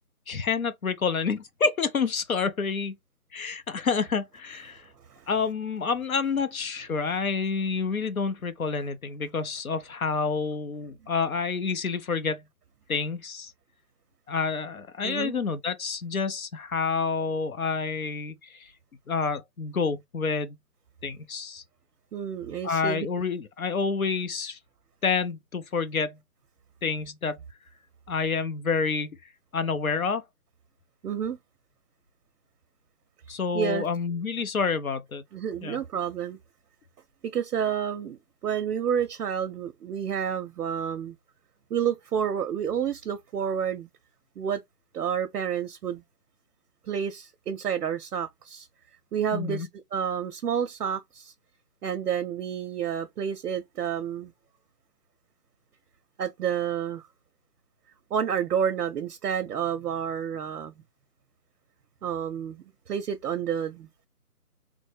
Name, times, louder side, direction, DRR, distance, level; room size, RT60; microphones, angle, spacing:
voice 1, 0.3-2.9 3.3-4.8 5.3-12.4 12.9-13.5 14.3-18.7 19.1-20.6 21.0-21.6 22.6-24.6 25.0-26.2 26.8-27.4 28.1-29.2 29.5-30.2 33.3-35.2 35.6-35.8 49.3-49.7, left 5 dB, 65° left, 0.6 m, -28 dB
voice 2, 22.1-23.1 31.0-31.4 33.5-33.9 35.3-36.4 37.2-41.2 41.7-43.9 44.4-44.6 44.9-46.0 46.8-48.7 49.1-51.3 51.8-54.3 56.2-57.0 58.1-60.7 62.0-64.1, right 8 dB, 80° right, 0.6 m, -30 dB
3.2 x 2.0 x 3.2 m
figure-of-eight pair, 180°, 46 cm